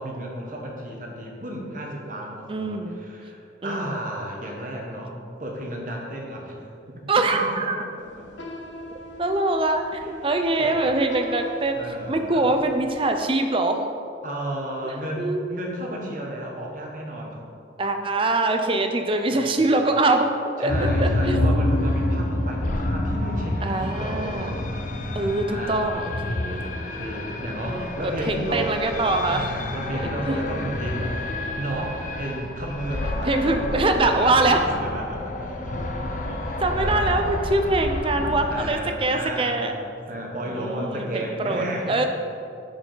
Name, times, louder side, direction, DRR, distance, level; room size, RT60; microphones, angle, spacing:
voice 1, 0.0-7.9 8.2-8.3 10.0-10.8 11.7-12.5 14.2-17.4 18.7-18.8 19.3-19.7 20.6-24.7 25.5-25.8 26.9-28.8 29.3-31.2 31.6-35.8 36.2-37.1 38.2-42.1, right 1 dB, 45° right, -1 dB, 1.2 m, -33 dB
voice 2, 2.5-2.9 3.6-3.9 7.1-7.8 9.2-11.8 12.1-13.9 14.8-15.4 17.8-20.3 20.6-21.4 23.6-24.8 25.1-26.8 27.7-27.9 28.2-29.5 30.3-30.4 33.2-34.7 36.6-39.7 40.5-42.1, right 2 dB, 30° right, 6 dB, 0.5 m, -23 dB
sound 1, 8.0-13.1, equal, 75° left, 0.9 m, -41 dB
sound 2, 20.7-38.7, left 1 dB, 40° left, 0.5 m, -28 dB
10.0 x 4.8 x 3.9 m, 2.6 s
head